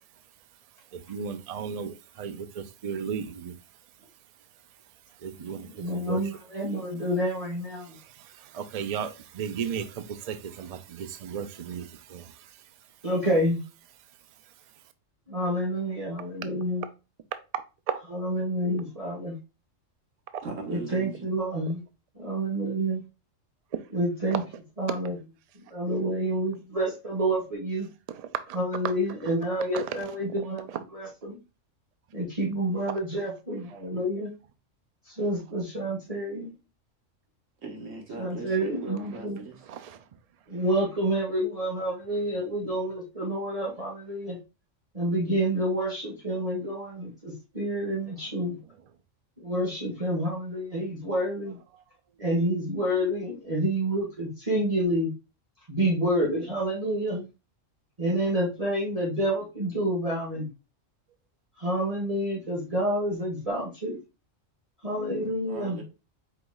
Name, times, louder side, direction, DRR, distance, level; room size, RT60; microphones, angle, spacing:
voice 1, 0.9-3.5 5.2-6.4 7.8-12.6 20.3-20.4 24.3-24.5 24.9-25.0 28.1-28.6 29.2-29.3 29.7-30.8 32.9-33.0 39.0-39.2 39.6-40.0 48.0-48.3, right 7 dB, 50° right, 0.4 m, -36 dB
voice 2, 5.8-7.9 13.0-13.6 15.3-16.8 18.1-19.4 20.7-21.8 22.1-23.0 23.9-24.4 24.8-25.2 25.7-27.9 28.5-30.7 30.9-31.4 32.1-34.3 35.1-36.5 38.2-39.4 40.5-44.4 44.9-48.6 49.4-51.6 52.2-55.1 55.7-57.3 58.0-60.5 61.6-64.0 64.8-65.8, right 1 dB, 30° right, 1.4 m, -28 dB
voice 3, 20.4-21.3 37.6-39.6 65.5-65.8, right 4 dB, 85° right, 1.6 m, -38 dB
4.9 x 3.9 x 2.3 m
omnidirectional pair, 1.3 m